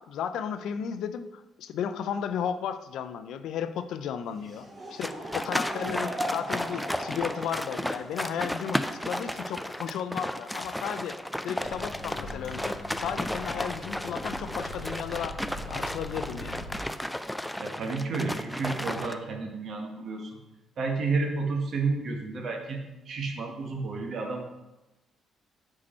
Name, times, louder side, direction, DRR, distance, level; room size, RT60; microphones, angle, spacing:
voice 1, 0.0-11.2 11.4-16.7, left 8 dB, 80° left, 11 dB, 0.4 m, -34 dB
Laughter / Crowd, 4.2-10.0, equal, 25° right, 1.8 m, -39 dB
sound 1, 5.0-19.1, left 1 dB, 5° left, 0.3 m, -33 dB
Microwave oven, 11.6-16.8, left 1 dB, 60° left, 1.3 m, -42 dB
voice 2, 17.6-20.4 20.8-24.4, right 4 dB, 60° right, 3 dB, 1.1 m, -31 dB
5.0 x 4.7 x 4.2 m, 1.0 s
cardioid pair, 90°, 0 cm